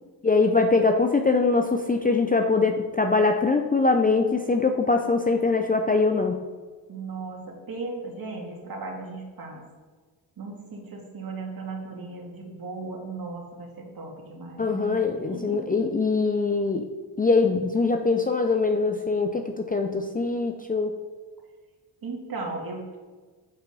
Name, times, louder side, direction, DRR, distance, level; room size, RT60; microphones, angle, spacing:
voice 1, 0.2-6.5 14.6-16.9 17.2-20.9, left 3 dB, 20° left, 5 dB, 0.5 m, -23 dB
voice 2, 6.9-9.6 10.4-15.0 15.3-15.8 22.0-23.0, right 3 dB, 45° right, 0 dB, 2.1 m, -36 dB
7.6 x 4.4 x 5.4 m, 1.4 s
supercardioid pair, 65°, 47 cm